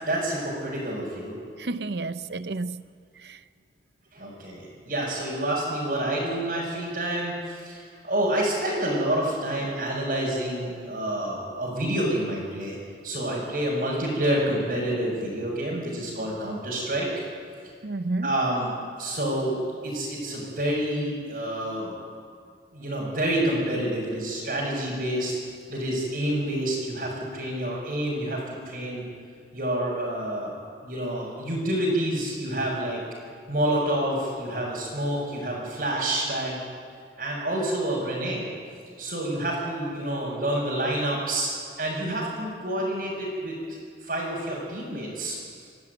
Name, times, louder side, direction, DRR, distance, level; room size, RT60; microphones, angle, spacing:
voice 1, 0.1-1.4 4.1-12.8 13.0-17.1 18.2-22.0 22.7-25.3 25.7-29.0 29.5-30.5 30.8-33.0 33.5-36.6 37.2-38.5 39.0-41.5 41.8-45.4, right 1 dB, 55° right, 5.6 m, -28 dB
voice 2, 1.6-2.8 3.2-3.4 17.8-18.4, right 2 dB, 70° right, 0.7 m, -31 dB
27.5 x 12.0 x 9.4 m
head